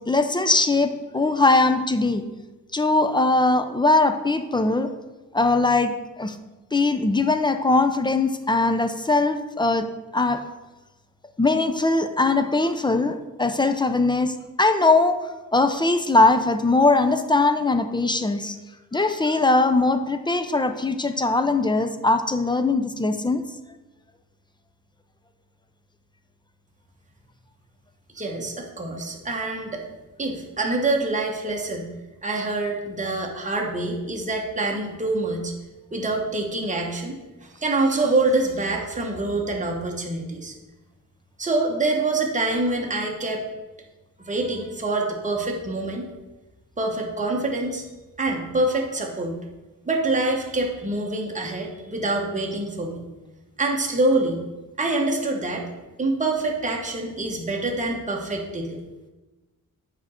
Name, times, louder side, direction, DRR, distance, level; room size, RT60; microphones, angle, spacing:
voice 1, 0.0-2.2 2.7-4.9 5.3-6.4 6.7-9.9 10.1-10.4 11.4-15.2 15.5-18.6 18.9-23.4, left 2 dB, 15° left, 8 dB, 0.3 m, -21 dB
voice 2, 28.1-29.8 30.2-31.9 32.2-35.5 35.9-37.2 37.6-40.5 41.4-43.4 44.2-46.1 46.8-47.8 48.2-49.4 49.9-53.0 53.6-54.4 54.8-55.7 56.0-58.8, right 2 dB, 20° right, 0 dB, 1.0 m, -25 dB
7.2 x 5.0 x 4.2 m, 1.1 s
wide cardioid pair, 150°, 33 cm